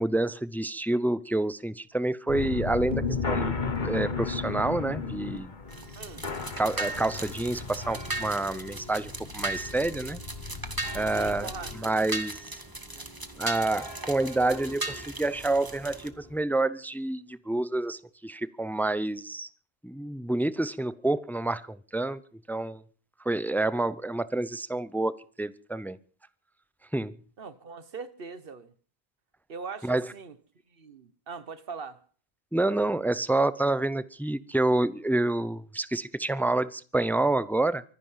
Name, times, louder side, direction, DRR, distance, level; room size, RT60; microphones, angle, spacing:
voice 1, 0.0-3.6 3.8-5.5 6.6-10.2 10.9-11.5 11.8-12.4 13.4-19.5 19.8-22.2 22.5-22.8 23.2-25.1 25.4-26.0 26.9-27.1 29.8-30.0 32.5-37.8, right 2 dB, ahead, 0.4 m, -28 dB
sound 1, 2.3-11.8, left 4 dB, 50° left, 1.4 m, -34 dB
sound 2, 5.6-16.4, equal, 25° left, 4.0 m, -48 dB
sound 3, 5.7-16.1, right 2 dB, 20° right, 1.3 m, -38 dB
voice 2, 6.0-6.3 11.1-11.7 27.4-28.7 29.5-30.4 30.7-32.0, right 5 dB, 65° right, 1.4 m, -41 dB
24.5 x 10.5 x 5.7 m
omnidirectional pair, 1.0 m